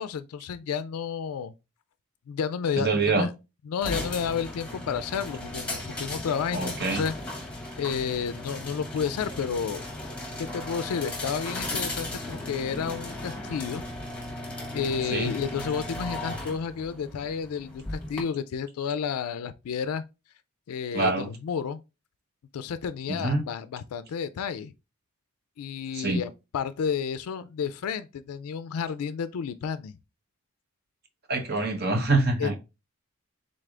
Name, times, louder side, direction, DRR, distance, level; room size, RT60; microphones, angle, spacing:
voice 1, 0.0-1.5 2.3-3.3 3.7-7.1 7.8-9.8 10.4-13.8 14.7-20.0 20.7-21.8 22.5-24.7 25.6-29.9 32.4-32.6, left 7 dB, 90° left, 0.4 m, -31 dB
voice 2, 2.8-3.3 6.5-7.0 15.1-15.3 20.9-21.3 23.1-23.4 25.9-26.2 31.3-32.5, right 3 dB, 45° right, 0.9 m, -25 dB
sound 1, 3.8-18.2, left 1 dB, 5° left, 1.3 m, -36 dB
3.9 x 3.3 x 3.7 m
head